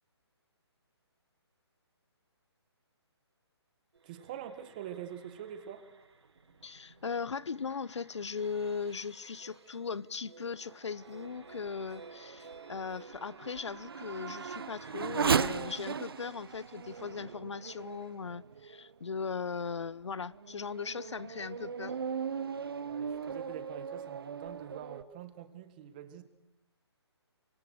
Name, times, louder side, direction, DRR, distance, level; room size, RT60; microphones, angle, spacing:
sound 1, 3.9-15.5, right 4 dB, 75° right, 6.6 m, -56 dB
voice 1, 4.0-5.8 22.9-26.2, right 10 dB, 20° right, 1.5 m, -45 dB
voice 2, 6.6-22.0, left 5 dB, 90° left, 0.9 m, -38 dB
Race car auto racing / Accelerating revving vroom, 11.0-18.9 19.6-19.7 20.3-25.0, right 6 dB, 55° right, 0.9 m, -37 dB
28.0 x 25.5 x 6.5 m
hypercardioid pair, 175°, 14 cm